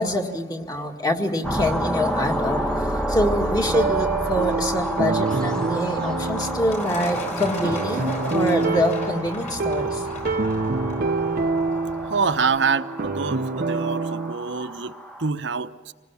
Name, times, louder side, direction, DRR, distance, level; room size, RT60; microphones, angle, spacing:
voice 1, 0.0-10.1, equal, 20° left, 2 dB, 2.0 m, -25 dB
sound 1, 1.4-15.3, right 1 dB, 5° left, 1.1 m, -30 dB
Truck, 2.1-12.4, equal, 40° left, 4.7 m, -37 dB
sound 2, 3.7-14.3, right 3 dB, 50° right, 0.6 m, -27 dB
voice 2, 12.1-15.9, right 5 dB, 80° right, 10 dB, 1.0 m, -26 dB
26.5 x 20.0 x 7.1 m, 1.4 s
head